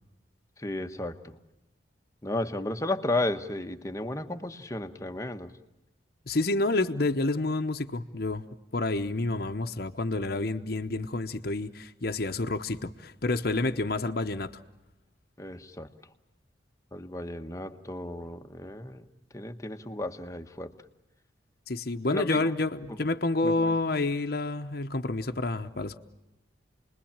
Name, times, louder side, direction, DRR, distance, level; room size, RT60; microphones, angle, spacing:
voice 1, 0.6-1.4 2.2-5.5 15.4-15.9 16.9-19.0 19.3-20.7 22.1-22.5 23.4-23.7, left 2 dB, 15° left, 7 dB, 1.1 m, -33 dB
voice 2, 6.3-8.4 8.7-14.5 21.7-26.0, left 2 dB, 55° left, 6 dB, 1.0 m, -29 dB
29.5 x 21.0 x 8.8 m, 0.91 s
head